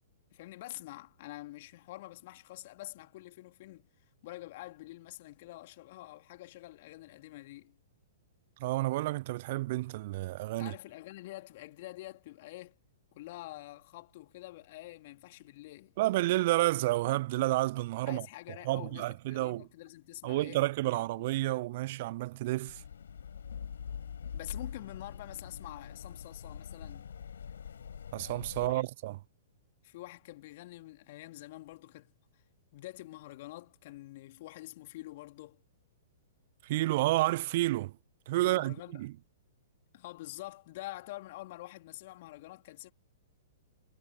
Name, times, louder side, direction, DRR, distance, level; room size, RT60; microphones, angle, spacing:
voice 1, 0.3-3.9 4.2-7.7 10.6-12.8 13.1-15.9 18.1-20.6 20.9-21.3 24.3-27.1 28.6-28.8 29.8-32.1 32.7-35.6 38.4-39.0 39.9-42.9, left 17 dB, 50° left, 2.6 m, -47 dB
voice 2, 8.6-10.7 16.0-18.3 18.7-19.7 20.2-22.8 28.1-29.2 36.6-37.9 38.3-39.1, right 17 dB, 50° right, 0.3 m, -30 dB
sound 1, 22.7-28.8, left 7 dB, 70° left, 5.2 m, -44 dB
figure-of-eight pair, 110°, 0 cm